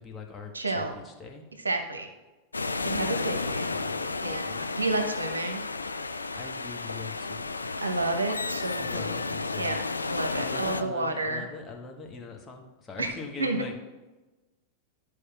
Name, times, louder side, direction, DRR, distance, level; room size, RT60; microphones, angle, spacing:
voice 1, 0.0-1.4 3.4-4.6 6.3-7.6 8.8-9.8 10.1-13.8, left 4 dB, 20° left, 1 dB, 1.2 m, -42 dB
voice 2, 0.5-0.9 1.6-2.1 2.8-3.7 4.2-5.6 7.8-9.2 9.5-9.8 10.1-11.4 13.0-13.1 13.4-13.8, right 2 dB, 75° right, 6 dB, 0.9 m, -30 dB
sound 1, 2.5-10.8, left 3 dB, 80° left, 0.3 m, -32 dB
12.5 x 4.9 x 2.4 m, 1.1 s
figure-of-eight pair, 90°, 0 cm